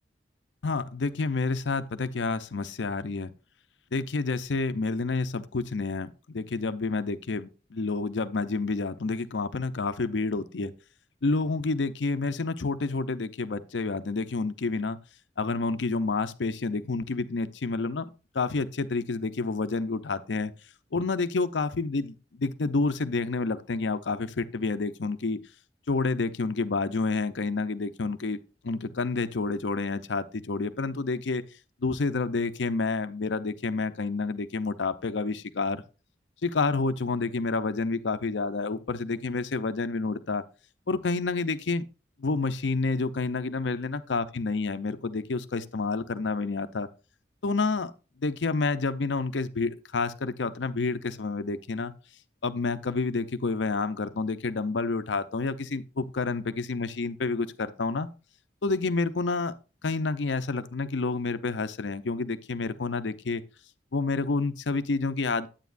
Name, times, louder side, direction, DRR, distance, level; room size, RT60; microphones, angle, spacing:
voice 1, 0.6-3.3 3.9-10.7 11.2-15.0 15.4-18.1 18.3-20.5 20.9-25.4 25.9-28.4 28.6-31.4 31.8-35.8 36.4-40.4 40.9-41.9 42.2-46.9 47.4-47.9 48.2-51.9 52.4-58.1 58.6-59.5 59.8-63.4 63.9-65.5, left 3 dB, 85° left, 0.6 m, -29 dB
9.3 x 8.9 x 2.5 m
head